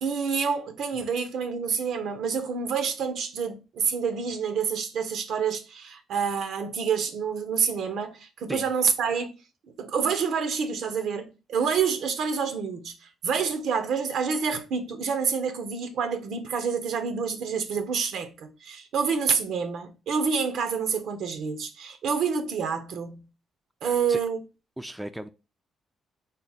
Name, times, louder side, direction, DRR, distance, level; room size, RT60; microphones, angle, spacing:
voice 1, 0.0-9.3 9.8-23.2 23.8-24.4, right 6 dB, 75° right, 0.6 m, -28 dB
voice 2, 23.8-24.2 24.8-25.3, right 1 dB, 5° right, 0.3 m, -36 dB
3.6 x 2.1 x 3.9 m
cardioid pair, 90°, 0 cm